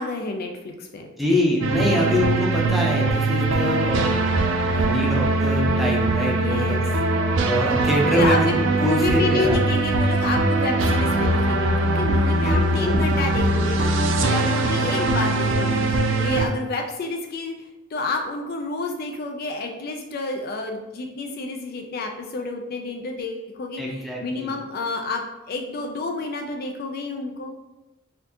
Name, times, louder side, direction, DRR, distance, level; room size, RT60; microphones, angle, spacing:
voice 1, 0.0-1.1 6.4-6.8 8.1-13.9 14.3-17.5 17.9-27.5, left 3 dB, 50° left, 3 dB, 0.4 m, -29 dB
voice 2, 1.2-4.2 4.6-6.8 7.4-8.5 8.8-9.6 12.4-13.1 14.9-15.1 23.8-24.5, left 1 dB, ahead, -3 dB, 0.6 m, -24 dB
sound 1, 1.6-16.5, right 2 dB, 65° right, 0.4 m, -21 dB
4.2 x 2.6 x 2.8 m, 0.99 s
head